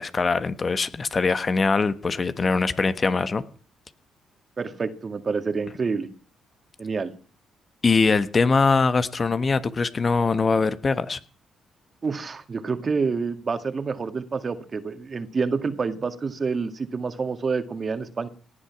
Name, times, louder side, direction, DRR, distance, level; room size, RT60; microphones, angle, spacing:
voice 1, 0.0-3.4 7.8-11.2, left 4 dB, 40° left, 1.3 m, -22 dB
voice 2, 4.6-6.1 6.8-7.1 12.0-18.3, right 4 dB, 40° right, 2.0 m, -28 dB
18.5 x 11.5 x 5.9 m
supercardioid pair, 60°, 0 cm